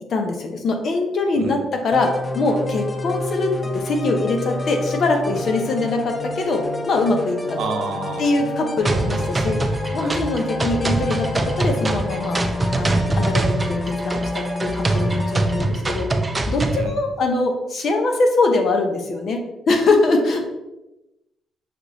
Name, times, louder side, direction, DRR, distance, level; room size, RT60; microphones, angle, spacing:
voice 1, 0.1-7.6 8.2-9.6 9.9-12.4 12.8-16.1 16.5-20.4, left 3 dB, 60° left, 3 dB, 0.8 m, -22 dB
sound 1, 1.9-15.6, left 2 dB, 25° left, 0.7 m, -29 dB
voice 2, 7.5-8.3 10.0-10.2 16.7-16.9, right 3 dB, 85° right, 4 dB, 0.7 m, -29 dB
sound 2, 8.9-16.9, right 2 dB, 20° right, 0.4 m, -23 dB
6.1 x 3.0 x 2.7 m, 0.97 s
cardioid pair, 90°, 0 cm